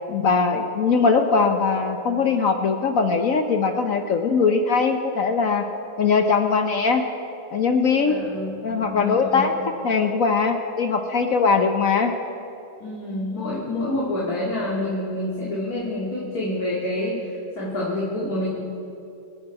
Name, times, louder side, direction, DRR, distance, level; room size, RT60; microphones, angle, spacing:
voice 1, 0.1-5.7 6.0-7.0 7.5-8.2 8.6-9.5 9.8-12.1, left 5 dB, 60° left, 6 dB, 0.9 m, -21 dB
voice 2, 8.0-9.5 12.8-18.5, left 1 dB, 45° left, -5 dB, 2.5 m, -28 dB
25.0 x 9.3 x 4.8 m, 2.8 s
omnidirectional pair, 2.3 m